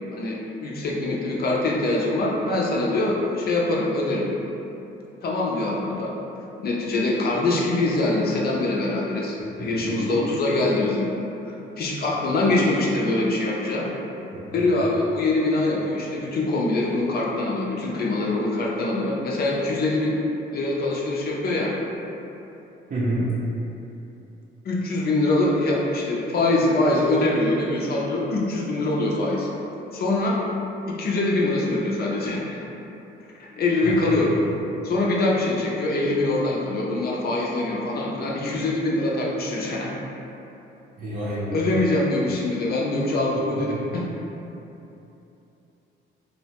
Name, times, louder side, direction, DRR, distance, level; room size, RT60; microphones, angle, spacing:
voice 1, 0.1-4.3 5.2-6.1 6.6-11.1 11.5-13.9 14.5-20.2 20.5-21.7 24.6-29.5 29.9-30.4 30.9-32.6 33.6-34.3 34.8-39.9 41.5-44.1, left 2 dB, 50° left, -3 dB, 0.5 m, -23 dB
voice 2, 9.4-10.2 14.3-14.7 22.9-23.3 33.8-33.9 41.0-41.5 43.5-43.8, right 1 dB, 40° right, -8 dB, 0.5 m, -30 dB
2.7 x 2.1 x 2.8 m, 2.9 s
cardioid pair, 90°, 20 cm